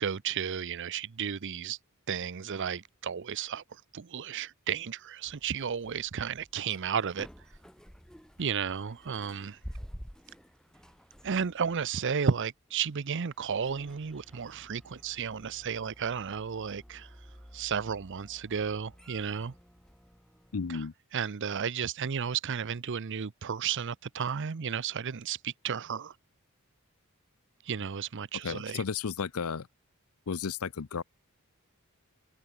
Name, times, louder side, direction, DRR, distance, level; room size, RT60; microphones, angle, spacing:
voice 1, 0.0-1.8 2.1-3.6 3.9-7.3 8.4-9.6 11.2-17.1 17.5-19.5 20.7-20.8 21.1-26.1 27.7-28.8, right 7 dB, 55° right, 0.6 m, -33 dB
sound 1, 5.3-20.7, equal, 5° left, 4.4 m, -52 dB
voice 2, 20.5-20.9 28.4-29.7 30.3-31.0, left 5 dB, 75° left, 0.6 m, -33 dB
head